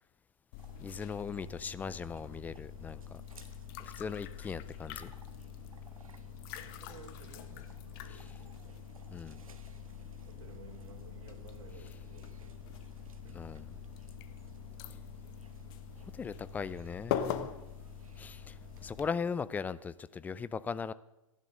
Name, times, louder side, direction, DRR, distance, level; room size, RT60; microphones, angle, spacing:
sound 1, 0.5-19.1, left 9 dB, 40° left, 1.2 m, -44 dB
sound 2, 0.6-19.4, right 5 dB, 80° right, 1.3 m, -60 dB
voice 1, 0.8-3.2 3.8-5.1 9.1-9.4 13.3-13.6 16.1-17.5 18.2-20.9, left 5 dB, 10° left, 17 dB, 0.4 m, -39 dB
sound 3, 4.5-11.3, left 6 dB, 55° left, 1.9 m, -64 dB
voice 2, 6.5-8.8 10.3-12.9 13.2-13.5 18.0-18.3, right 5 dB, 60° right, 1 dB, 3.7 m, -55 dB
16.0 x 11.0 x 6.6 m, 0.92 s
hypercardioid pair, 120°, 18 cm